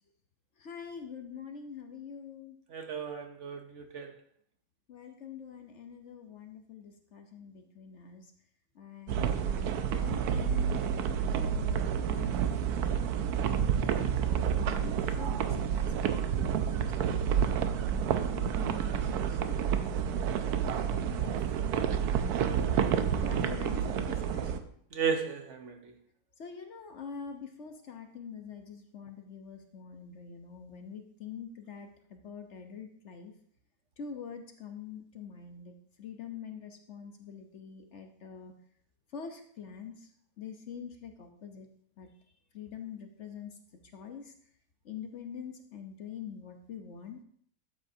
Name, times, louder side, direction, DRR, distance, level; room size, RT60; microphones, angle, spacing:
voice 1, 0.6-2.6 4.9-8.3 8.7-10.9 11.3-12.5 12.8-13.1 13.4-15.9 16.4-21.4 22.3-24.7 26.4-33.3 34.0-38.5 39.1-40.1 40.4-41.7 42.0-42.1 42.5-43.6 43.9-44.3 44.8-47.2, left 7 dB, 55° left, 5 dB, 1.0 m, -45 dB
voice 2, 2.7-4.1 24.9-25.9, right 6 dB, 55° right, 5 dB, 1.1 m, -34 dB
sound 1, 9.1-24.6, right 8 dB, 80° right, 1.2 m, -29 dB
12.0 x 7.9 x 2.7 m, 0.63 s
omnidirectional pair, 1.6 m